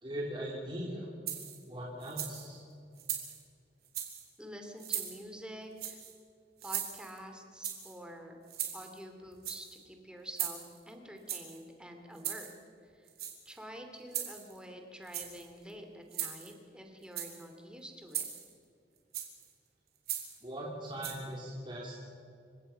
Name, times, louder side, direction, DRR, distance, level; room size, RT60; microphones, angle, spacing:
voice 1, 0.0-1.1 1.7-2.6 20.4-22.0, right 1 dB, 30° right, -4 dB, 2.9 m, -40 dB
sound 1, 1.3-1.6 2.0-2.5 3.0-3.4 3.8-4.2 4.8-5.2 5.8-6.1 6.6-7.2 7.6-8.0 8.5-9.0 9.3-9.8 10.4-10.8 11.3-11.6 12.2-12.5 13.1-13.6 14.1-14.6 15.0-15.5 16.1-16.5 17.0-17.4 18.1-18.5 19.1-19.4 20.1-20.4 21.0-21.1, right 10 dB, 60° right, 3.5 m, -38 dB
voice 2, 4.4-6.0 6.6-8.4 8.7-12.5 12.8-13.1 13.4-18.3, equal, 5° right, 4 dB, 2.5 m, -48 dB
28.5 x 16.5 x 5.6 m, 2.4 s
head